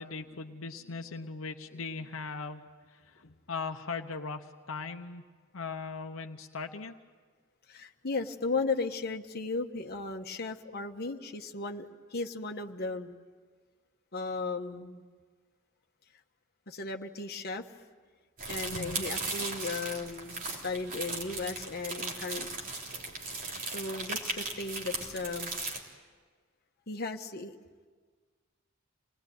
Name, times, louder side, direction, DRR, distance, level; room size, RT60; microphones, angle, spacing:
voice 1, 0.0-5.2 5.5-6.9 18.7-19.0, left 4 dB, 75° left, 5 dB, 0.9 m, -39 dB
voice 2, 7.7-13.1 14.1-15.0 16.7-17.7 18.5-22.6 23.7-25.5 26.9-27.5, left 3 dB, 50° left, 3 dB, 1.3 m, -36 dB
sound 1, 18.4-25.8, right 3 dB, 40° right, 3.5 m, -37 dB
27.5 x 20.0 x 9.3 m, 1.5 s
head